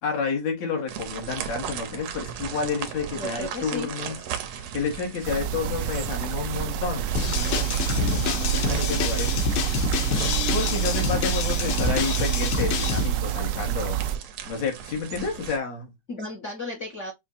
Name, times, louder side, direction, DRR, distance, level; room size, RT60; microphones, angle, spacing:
voice 1, 0.0-4.2 4.5-9.4 10.5-14.0 14.5-15.9, left 5 dB, 65° left, 2.6 m, -30 dB
sound 1, 0.9-15.6, right 8 dB, 70° right, 1.7 m, -37 dB
voice 2, 3.2-3.9 16.1-17.1, left 1 dB, 40° left, 1.0 m, -34 dB
sound 2, 5.2-14.2, right 11 dB, 85° right, 1.4 m, -27 dB
sound 3, 7.2-13.1, left 8 dB, 85° left, 2.5 m, -28 dB
7.0 x 2.5 x 2.6 m
omnidirectional pair, 3.7 m